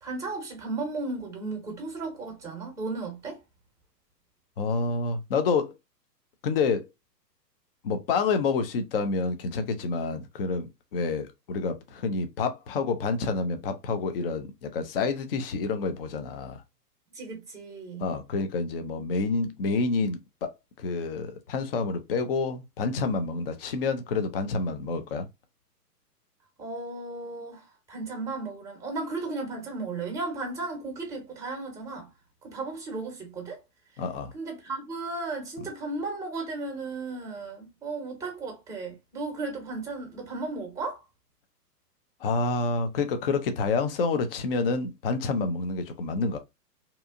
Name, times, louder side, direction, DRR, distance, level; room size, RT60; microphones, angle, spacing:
voice 1, 0.0-3.4 17.1-18.1 26.6-32.1 32.4-33.6 34.3-41.0, right 3 dB, 5° right, 0.9 m, -35 dB
voice 2, 4.6-5.7 6.4-6.9 7.8-16.6 18.0-20.5 20.8-25.3 34.0-34.3 42.2-46.4, left 4 dB, 40° left, 0.4 m, -28 dB
2.8 x 2.3 x 2.4 m
hypercardioid pair, 120°, 49 cm